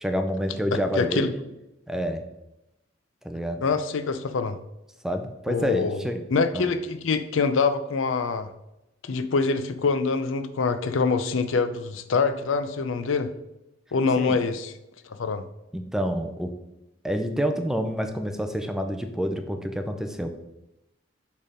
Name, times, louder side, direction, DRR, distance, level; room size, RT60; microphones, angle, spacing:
voice 1, 0.0-1.4 1.9-2.2 3.2-3.6 5.0-6.2 6.5-6.7 14.2-14.4 15.7-16.5 17.0-20.3, equal, 5° right, 6 dB, 0.5 m, -28 dB
voice 2, 0.7-1.3 3.6-4.6 5.5-6.0 6.3-8.5 9.0-13.3 13.9-14.7 15.2-15.4, left 4 dB, 80° left, 10 dB, 0.5 m, -25 dB
6.5 x 3.6 x 5.0 m, 0.90 s
head